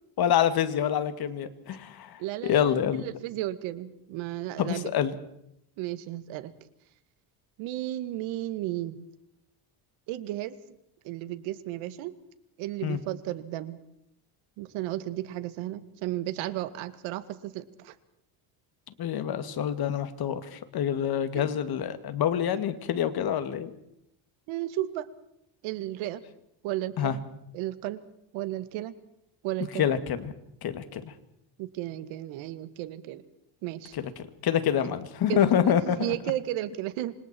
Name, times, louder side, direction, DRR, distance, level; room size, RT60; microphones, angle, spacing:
voice 1, 0.2-3.0 4.6-5.2 12.8-13.0 19.0-23.7 27.0-27.1 29.7-30.3 30.6-31.1 33.9-34.0 34.4-36.2, left 9 dB, 50° left, 10 dB, 2.5 m, -27 dB
voice 2, 2.2-2.7 3.0-4.9 5.8-6.5 7.6-9.0 10.1-10.6 11.0-12.1 12.6-13.8 14.6-17.9 21.3-21.5 24.5-25.1 25.6-26.2 26.6-27.2 27.5-28.0 28.3-28.9 29.4-29.9 31.6-33.2 33.6-33.9 34.8-35.0 35.3-37.2, right 14 dB, 85° right, 12 dB, 2.0 m, -33 dB
28.0 x 26.0 x 4.6 m, 0.77 s
cardioid pair, 130°, 47 cm